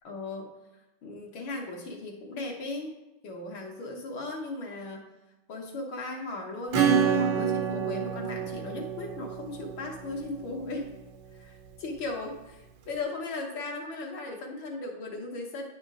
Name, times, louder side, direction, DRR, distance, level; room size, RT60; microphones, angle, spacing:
voice 1, 0.0-0.5 1.0-2.9 3.2-5.1 5.5-10.9 11.4-15.7, left 2 dB, 75° left, 0 dB, 1.9 m, -37 dB
Acoustic guitar / Strum, 6.7-11.0, right 7 dB, 80° right, 1.4 m, -28 dB
9.3 x 4.3 x 3.6 m, 1.0 s
omnidirectional pair, 2.2 m